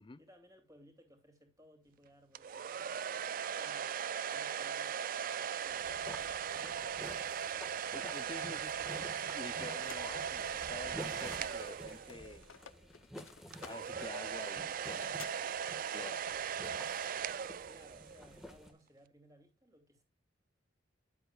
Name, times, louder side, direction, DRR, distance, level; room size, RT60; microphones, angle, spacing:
voice 1, 0.0-5.9 17.6-20.0, equal, 15° right, 2.8 m, -62 dB
sound 1, 2.3-12.5 13.5-18.3, right 8 dB, 45° right, 0.4 m, -39 dB
sound 2, 5.5-18.7, equal, ahead, 1.5 m, -51 dB
voice 2, 7.9-12.4 13.6-15.5 15.9-16.3, left 3 dB, 25° left, 0.5 m, -49 dB
sound 3, 9.2-11.7 12.0-15.3, left 8 dB, 90° left, 0.7 m, -55 dB
11.0 x 7.9 x 2.3 m
head